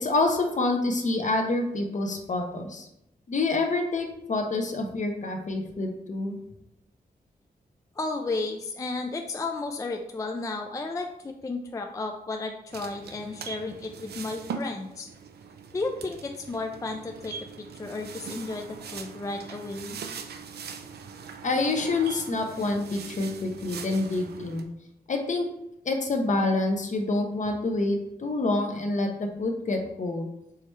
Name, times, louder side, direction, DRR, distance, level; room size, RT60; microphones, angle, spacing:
voice 1, 0.0-2.9 3.3-6.4 21.4-24.7 25.1-25.5 25.8-30.3, left 2 dB, 50° left, 4 dB, 0.7 m, -27 dB
voice 2, 8.0-15.1 15.7-20.0, left 3 dB, 20° left, 4 dB, 0.3 m, -33 dB
sound 1, 12.7-24.6, right 6 dB, 90° right, 0.4 m, -41 dB
4.7 x 3.2 x 3.1 m, 0.81 s
wide cardioid pair, 110°, 16 cm